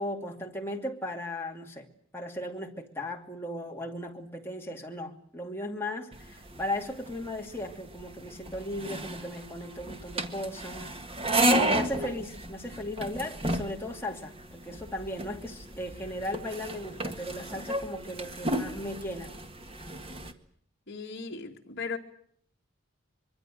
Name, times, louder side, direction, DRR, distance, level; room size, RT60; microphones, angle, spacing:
voice 1, 0.0-1.9 2.1-10.9 11.5-19.3, left 1 dB, 10° left, 2.7 m, -37 dB
sound 1, 6.1-20.3, right 1 dB, 25° right, 1.8 m, -33 dB
voice 2, 20.9-22.0, left 4 dB, 50° left, 2.5 m, -37 dB
24.5 x 23.0 x 7.8 m
head